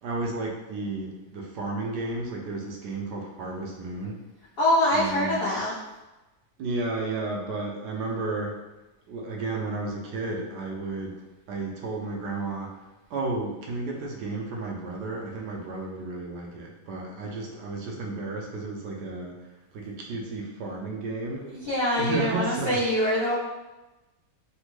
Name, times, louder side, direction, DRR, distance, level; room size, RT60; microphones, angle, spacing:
voice 1, 0.0-4.2 4.9-5.4 6.6-8.6 9.1-11.2 11.5-21.5 22.0-22.8, right 3 dB, 75° right, 0 dB, 1.1 m, -33 dB
voice 2, 4.6-5.7 21.5-23.3, left 1 dB, 65° left, -10 dB, 0.6 m, -24 dB
3.4 x 2.1 x 3.0 m, 1.1 s
omnidirectional pair, 1.9 m